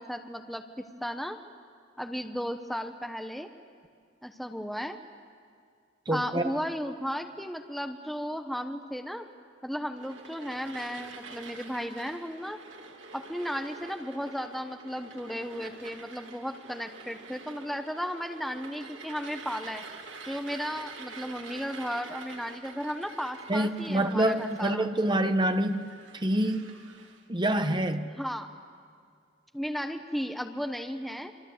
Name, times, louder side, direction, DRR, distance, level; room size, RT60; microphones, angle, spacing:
voice 1, 0.0-1.4 2.0-3.5 4.2-5.0 6.1-9.3 9.6-12.6 13.1-19.8 20.2-24.9 28.2-28.5 29.5-31.3, equal, ahead, 6 dB, 1.0 m, -35 dB
voice 2, 6.1-6.5 23.5-26.7 27.3-28.2, right 1 dB, 25° right, 8 dB, 1.2 m, -27 dB
sound 1, 9.9-27.2, right 4 dB, 85° right, 2.5 m, -47 dB
28.0 x 23.5 x 7.9 m, 2.2 s
head